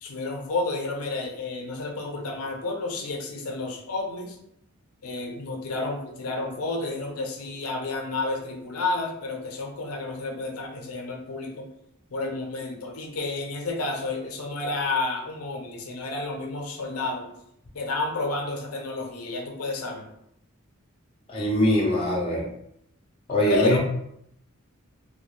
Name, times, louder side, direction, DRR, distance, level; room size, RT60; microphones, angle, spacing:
voice 1, 0.0-4.4 5.0-11.7 12.1-17.3 17.7-20.1 23.3-23.8, left 2 dB, 80° left, 2 dB, 0.5 m, -30 dB
voice 2, 21.3-22.5 23.3-23.8, left 1 dB, 25° left, -3 dB, 0.5 m, -22 dB
2.3 x 2.2 x 3.1 m, 0.75 s
head